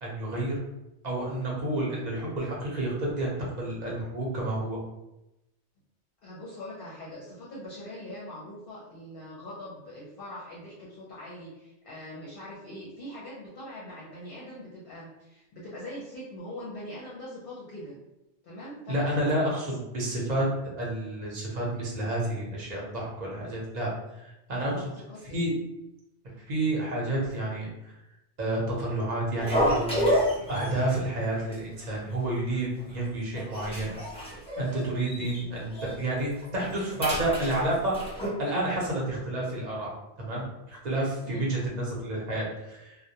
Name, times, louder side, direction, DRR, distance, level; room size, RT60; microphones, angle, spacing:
voice 1, 0.0-0.6 1.0-4.8 18.9-20.5 20.8-23.9 24.2-24.9 25.3-25.5 26.5-27.7 28.4-30.1 30.5-33.9 34.6-38.0 38.4-39.9 40.2-43.0, right 1 dB, 45° right, -4 dB, 0.7 m, -30 dB
voice 2, 6.2-17.9 18.4-19.2 19.4-19.6 24.7-25.5 41.3-41.5, left 1 dB, 60° left, -6 dB, 0.7 m, -42 dB
sound 1, 29.4-31.0 31.3-31.5 31.8-31.9 32.5-33.0 33.3-35.4 35.7-35.9 36.3-38.3, equal, 10° left, 0.4 m, -30 dB
2.2 x 2.1 x 2.7 m, 0.92 s
omnidirectional pair, 1.2 m